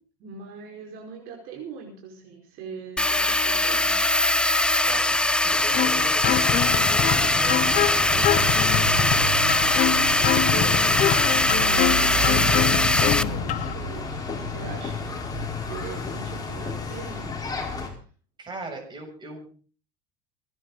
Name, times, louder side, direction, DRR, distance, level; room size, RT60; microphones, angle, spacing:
voice 1, 0.2-4.0 9.0-14.2 14.5-15.0 15.3-17.3, right 5 dB, 60° right, 0 dB, 4.9 m, -40 dB
sound 1, 3.0-13.2, left 2 dB, 5° left, 0.6 m, -21 dB
voice 2, 4.8-8.5 12.0-12.3 18.4-19.5, right 2 dB, 25° right, 2 dB, 7.4 m, -39 dB
sound 2, 5.7-13.7, left 12 dB, 45° left, 0.9 m, -26 dB
sound 3, 6.5-17.9, left 1 dB, 20° left, 4.5 m, -31 dB
27.0 x 10.5 x 4.0 m, 0.39 s
supercardioid pair, 105°, 17 cm